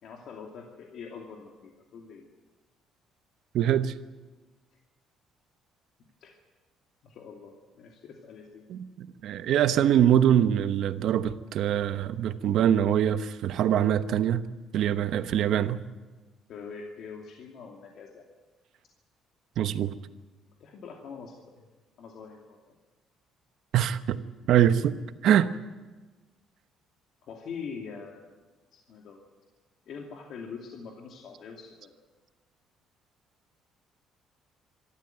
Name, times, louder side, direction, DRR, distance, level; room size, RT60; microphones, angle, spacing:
voice 1, 0.0-2.3 6.2-6.4 7.0-8.6 16.5-18.2 20.6-21.7 22.0-22.6 27.2-28.3 28.7-29.2 29.9-31.9, left 5 dB, 60° left, 0 dB, 2.6 m, -43 dB
voice 2, 3.5-3.9 8.7-14.4 14.7-15.8 19.6-19.9 23.7-24.2 24.5-25.0 25.2-25.5, right 10 dB, 65° right, 11 dB, 1.1 m, -23 dB
25.0 x 13.0 x 9.2 m, 1.3 s
cardioid pair, 140°, 0 cm